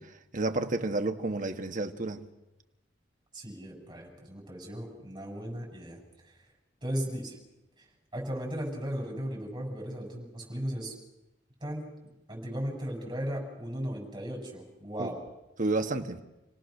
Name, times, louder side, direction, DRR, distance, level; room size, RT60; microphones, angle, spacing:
voice 1, 0.0-2.3 15.0-15.1 15.6-16.2, right 2 dB, 45° right, 1.5 m, -31 dB
voice 2, 3.3-6.3 6.8-7.4 7.8-7.9 8.1-10.9 11.6-11.9 12.3-15.2, equal, 25° right, 7.1 m, -36 dB
28.5 x 18.5 x 6.6 m
head